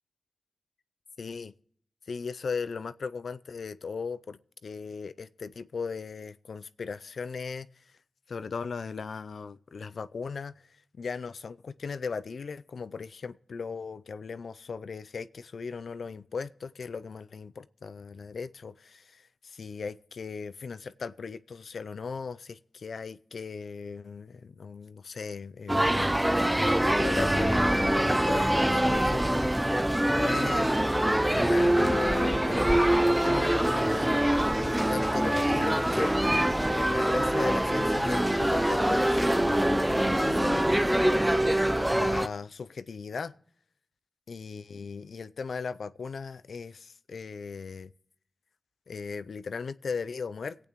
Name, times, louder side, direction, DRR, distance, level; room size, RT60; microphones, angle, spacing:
voice 1, 1.2-1.5 2.1-7.7 8.3-10.5 11.0-17.5 17.8-26.2 27.0-30.7 31.3-34.2 34.6-36.1 36.7-40.9 41.9-43.3 44.3-47.9 48.9-50.7, left 5 dB, 80° left, 0.4 m, -37 dB
sound 1, 25.7-42.3, right 1 dB, 10° right, 0.5 m, -24 dB
22.0 x 8.7 x 3.0 m
cardioid pair, 60°, 0 cm